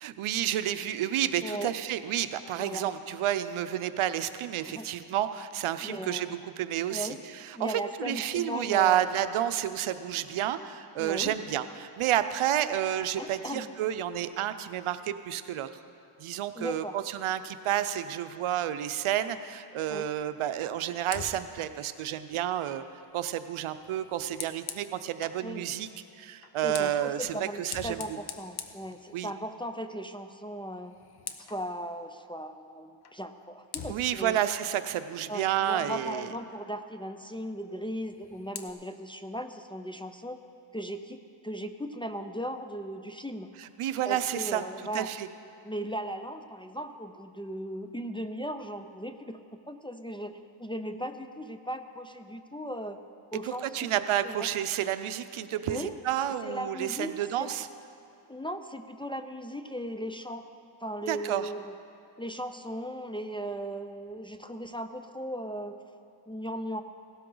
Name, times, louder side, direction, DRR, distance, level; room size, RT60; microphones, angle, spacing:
voice 1, 0.0-15.7 16.2-22.8 23.1-25.9 26.2-28.0 29.1-29.3 33.9-36.3 43.6-44.6 44.9-45.3 53.4-57.7 61.1-61.5, right 11 dB, 75° right, 12 dB, 0.7 m, -30 dB
voice 2, 1.4-1.7 2.6-2.9 4.6-4.9 5.8-6.4 6.9-7.2 7.5-9.2 11.0-11.4 13.2-13.7 16.5-17.0 19.9-20.1 25.4-25.7 26.6-30.9 31.4-34.4 35.3-40.4 40.7-41.2 41.4-43.5 44.1-45.1 45.6-53.0 53.3-53.9 54.2-54.5 55.7-55.9 56.2-57.5 58.3-60.4 60.8-61.7 62.2-65.8 66.3-66.8, equal, 10° left, 6 dB, 0.4 m, -37 dB
Fire, 21.0-25.5 26.4-29.6 30.0-30.3 30.6-31.7 33.0-33.2 33.7-36.0 37.9-38.7, left 7 dB, 50° left, 0.9 m, -45 dB
17.0 x 12.5 x 3.9 m, 2.7 s
cardioid pair, 105°, 49 cm